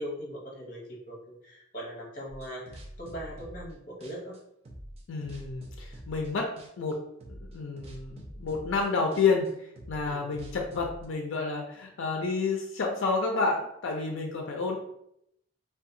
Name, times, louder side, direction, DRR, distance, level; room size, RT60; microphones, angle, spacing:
voice 1, 0.0-4.4 10.0-10.3 14.6-14.7, equal, 45° left, -3 dB, 0.8 m, -40 dB
sound 1, 2.3-3.8 4.0-6.3 6.6-6.9 7.2-11.1, right 1 dB, 30° right, 0.4 m, -45 dB
voice 2, 5.1-6.5 6.8-7.0 7.3-14.7, left 4 dB, 85° left, 1 dB, 0.4 m, -30 dB
2.7 x 2.2 x 2.5 m, 0.76 s
head